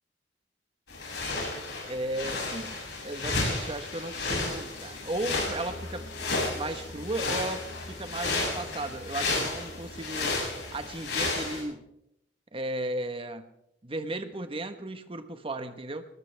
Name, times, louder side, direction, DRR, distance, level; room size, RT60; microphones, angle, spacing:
sound 1, 0.9-11.6, left 3 dB, 90° left, 7.3 m, -32 dB
voice 1, 1.8-2.7 3.0-6.2 6.5-10.4 10.7-11.8 12.5-13.5 13.8-16.0, right 1 dB, 30° right, 9 dB, 1.2 m, -35 dB
sound 2, 4.3-10.6, left 1 dB, 55° left, 6.1 m, -46 dB
20.0 x 19.5 x 3.5 m, 0.82 s
head